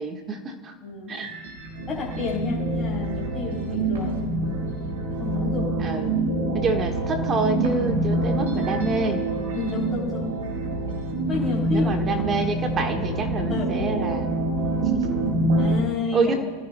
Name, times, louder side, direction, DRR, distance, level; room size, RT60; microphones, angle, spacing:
voice 1, 0.0-0.7 1.1-1.3 5.8-6.2 6.5-9.2 11.7-14.4 14.9-15.1 16.1-16.3, right 4 dB, 25° right, 6 dB, 1.5 m, -27 dB
voice 2, 0.8-1.2 1.9-4.2 5.1-5.8 9.5-10.3 11.3-11.9 12.4-12.5 13.5-13.7 15.5-16.3, left 4 dB, 15° left, -5 dB, 3.4 m, -30 dB
sound 1, 1.1-15.7, right 2 dB, 60° right, 4.7 m, -26 dB
27.5 x 15.5 x 2.2 m, 1.5 s
figure-of-eight pair, 90°, 0 cm